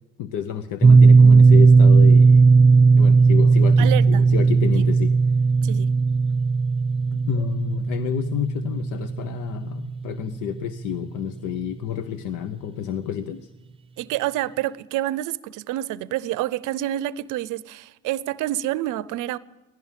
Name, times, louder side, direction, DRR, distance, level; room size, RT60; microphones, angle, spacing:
voice 1, 0.2-2.5 2.9-5.1 7.1-13.5, left 10 dB, 80° left, 0.8 m, -30 dB
sound 1, 0.8-10.7, right 4 dB, 20° right, 0.4 m, -16 dB
voice 2, 3.8-4.2 5.6-5.9 14.0-19.4, right 14 dB, 75° right, 0.6 m, -28 dB
16.0 x 12.5 x 7.3 m
supercardioid pair, 70°, 31 cm